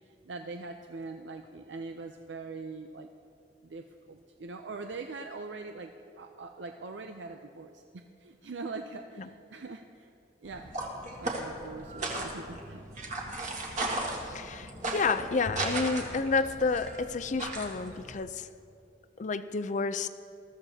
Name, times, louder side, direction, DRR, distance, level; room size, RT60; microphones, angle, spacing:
voice 1, 0.3-3.1 3.6-5.9 6.2-10.1 10.4-10.7 11.2-12.8, right 3 dB, 80° right, 5 dB, 0.5 m, -42 dB
sound 1, 10.5-18.2, right 2 dB, 45° right, 1.8 m, -36 dB
voice 2, 14.2-18.5 19.2-20.1, left 4 dB, 45° left, 11 dB, 0.5 m, -30 dB
21.0 x 14.0 x 2.8 m, 2.6 s
head